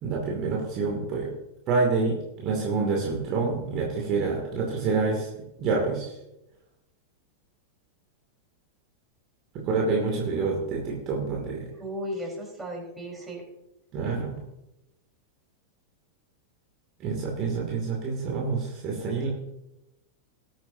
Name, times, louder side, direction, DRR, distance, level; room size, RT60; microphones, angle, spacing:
voice 1, 0.0-1.3 1.7-6.2 9.5-11.7 13.9-14.4 17.0-19.3, right 4 dB, 35° right, -1 dB, 2.5 m, -27 dB
voice 2, 11.8-13.4, equal, 10° right, -1 dB, 4.4 m, -35 dB
19.5 x 9.0 x 2.8 m, 0.92 s
figure-of-eight pair, 90°, 0 cm